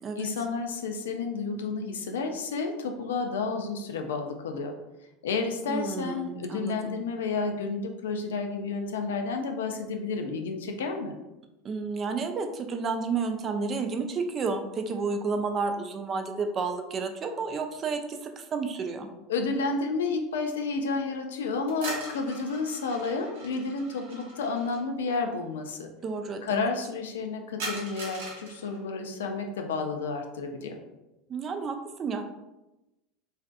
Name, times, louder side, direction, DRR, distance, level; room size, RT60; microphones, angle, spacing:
voice 1, 0.2-4.7 5.2-11.1 19.3-25.9 26.4-30.8, left 4 dB, 80° left, 4 dB, 0.3 m, -31 dB
voice 2, 5.7-6.9 11.6-19.1 26.0-26.7 31.3-32.2, right 4 dB, 35° right, 6 dB, 0.3 m, -31 dB
sound 1, 21.7-24.8 27.6-28.8, right 2 dB, 75° right, 0.7 m, -40 dB
2.4 x 2.4 x 2.2 m, 0.98 s
hypercardioid pair, 85°, 0 cm